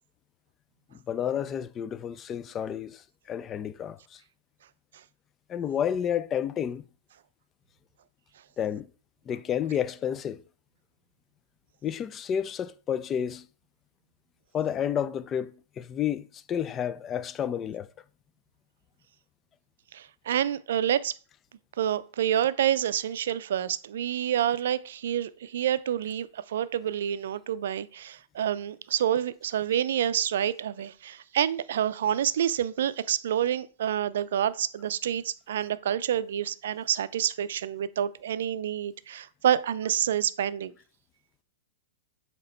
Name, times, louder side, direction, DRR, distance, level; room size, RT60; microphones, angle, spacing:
voice 1, 0.9-4.2 5.5-6.8 8.6-8.9 9.3-10.4 11.8-13.5 14.5-17.9, left 9 dB, 25° left, 0.4 m, -30 dB
voice 2, 19.9-21.1 21.8-40.7, right 10 dB, 70° right, 0.4 m, -28 dB
7.4 x 2.9 x 4.3 m
hypercardioid pair, 115°, 0 cm